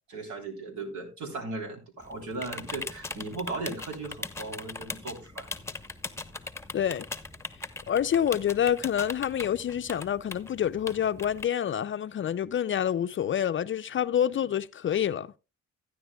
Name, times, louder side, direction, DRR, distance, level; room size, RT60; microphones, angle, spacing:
voice 1, 0.1-5.6, right 3 dB, 70° right, 3.5 m, -37 dB
sound 1, 2.0-11.5, left 3 dB, 10° left, 0.9 m, -40 dB
voice 2, 6.7-7.1 7.9-15.3, left 9 dB, 40° left, 0.5 m, -27 dB
14.5 x 10.0 x 2.3 m
cardioid pair, 90°, 30 cm